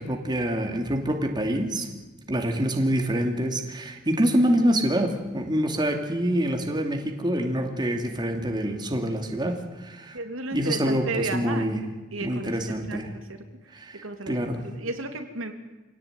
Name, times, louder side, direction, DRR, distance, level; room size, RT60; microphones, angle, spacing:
voice 1, 0.0-1.9 2.3-10.2 10.5-11.8 12.2-13.1 13.7-14.6, equal, 20° right, 3 dB, 2.7 m, -26 dB
voice 2, 10.1-11.7 12.1-13.0 13.3-13.4 14.0-14.4 14.6-15.5, right 2 dB, 75° right, 5 dB, 3.0 m, -33 dB
26.0 x 18.0 x 9.3 m, 1.2 s
head